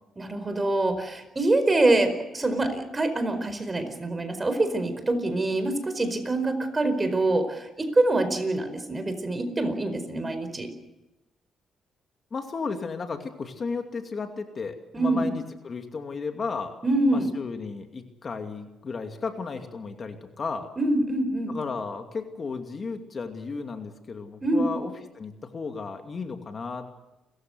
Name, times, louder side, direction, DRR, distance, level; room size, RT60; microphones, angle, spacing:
voice 1, 0.2-10.7 14.9-15.3 16.8-17.3 20.8-21.5 24.4-24.7, right 2 dB, 25° right, 9 dB, 4.7 m, -25 dB
voice 2, 12.3-16.8 17.1-20.7 21.5-26.9, left 4 dB, 40° left, 5 dB, 2.5 m, -34 dB
29.5 x 14.5 x 8.0 m, 0.98 s
cardioid pair, 90°, 0 cm